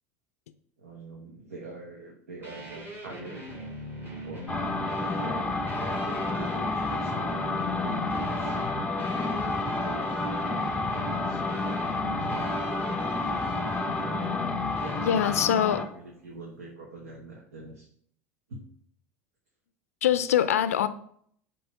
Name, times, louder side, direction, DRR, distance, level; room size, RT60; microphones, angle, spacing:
voice 1, 0.8-3.5 4.1-4.6 5.2-8.6 9.3-11.4 12.2-12.9 14.8-17.9 18.5-18.6, right 3 dB, 85° right, -1 dB, 1.0 m, -44 dB
sound 1, 2.4-15.5, left 1 dB, 25° right, 2.3 m, -41 dB
sound 2, 4.5-16.0, left 2 dB, 15° left, 0.7 m, -30 dB
voice 2, 15.0-15.8 20.0-20.9, left 10 dB, 85° left, 13 dB, 0.4 m, -23 dB
7.5 x 2.8 x 5.2 m, 0.63 s
hypercardioid pair, 85°, 8 cm